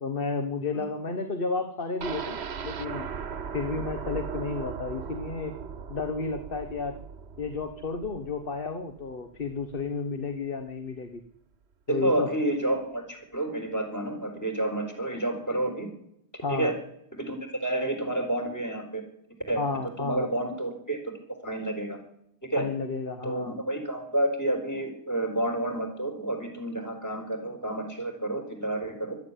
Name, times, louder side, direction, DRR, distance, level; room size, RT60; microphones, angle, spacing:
voice 1, 0.0-2.4 2.6-3.1 3.5-5.5 5.9-7.0 7.4-11.2 11.9-12.3 16.4-16.7 19.6-20.3 22.5-23.5, left 4 dB, 60° left, 7 dB, 1.4 m, -32 dB
sound 1, 2.0-9.9 10.2-10.3 10.7-10.8, right 6 dB, 80° right, 1.2 m, -38 dB
voice 2, 11.9-15.9 16.5-16.7 17.1-19.0 19.5-19.6 20.0-21.0 21.4-22.0 22.4-22.6 23.2-29.2, right 1 dB, 15° left, 2 dB, 4.4 m, -29 dB
22.0 x 13.5 x 9.9 m, 0.78 s
omnidirectional pair, 1.1 m